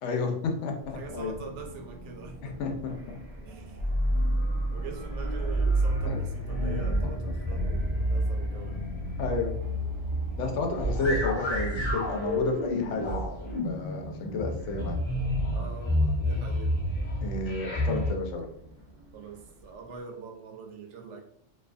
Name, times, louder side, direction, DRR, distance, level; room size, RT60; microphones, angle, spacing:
voice 1, 0.0-1.4 2.4-3.2 6.1-6.2 9.2-9.5 10.4-13.3 13.6-15.0 17.2-18.5, left 3 dB, 80° left, 3 dB, 0.9 m, -31 dB
sound 1, 0.8-20.0, right 1 dB, 10° right, 0.7 m, -47 dB
voice 2, 0.9-2.6 3.4-4.0 4.7-8.8 15.5-16.8 19.1-21.2, right 5 dB, 75° right, 2 dB, 0.9 m, -44 dB
sound 2, 3.8-18.1, equal, 40° left, 0.4 m, -29 dB
2.6 x 2.3 x 2.4 m, 0.66 s
omnidirectional pair, 1.2 m